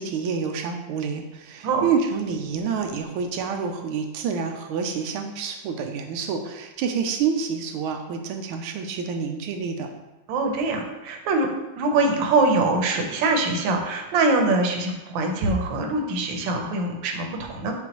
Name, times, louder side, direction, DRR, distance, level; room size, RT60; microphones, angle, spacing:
voice 1, 0.0-9.9, right 6 dB, 90° right, 4 dB, 1.5 m, -28 dB
voice 2, 10.3-11.5 11.8-17.7, right 3 dB, 70° right, 3 dB, 1.5 m, -23 dB
7.9 x 4.0 x 2.9 m, 1.0 s
omnidirectional pair, 2.2 m